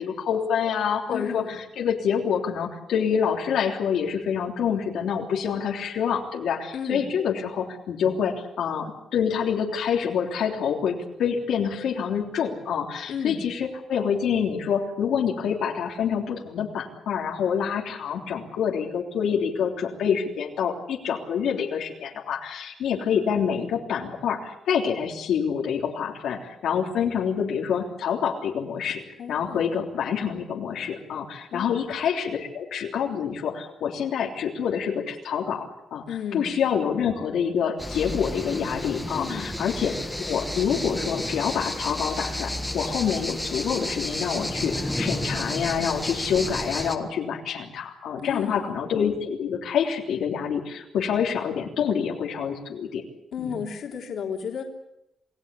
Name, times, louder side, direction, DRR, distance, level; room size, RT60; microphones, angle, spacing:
voice 1, 0.0-1.4 1.8-29.0 29.3-36.0 36.3-39.9 40.2-53.0 53.4-53.6, left 7 dB, 85° left, 0 dB, 3.4 m, -27 dB
voice 2, 1.1-1.6 6.7-7.1 13.1-13.4 29.2-29.6 31.5-31.8 36.1-36.5 39.1-39.5 48.2-48.7 53.3-54.7, left 6 dB, 60° left, 1 dB, 3.4 m, -33 dB
sound 1, 37.8-47.0, left 1 dB, 5° left, 1.5 m, -31 dB
28.5 x 18.5 x 8.4 m, 0.87 s
wide cardioid pair, 170°, 0 cm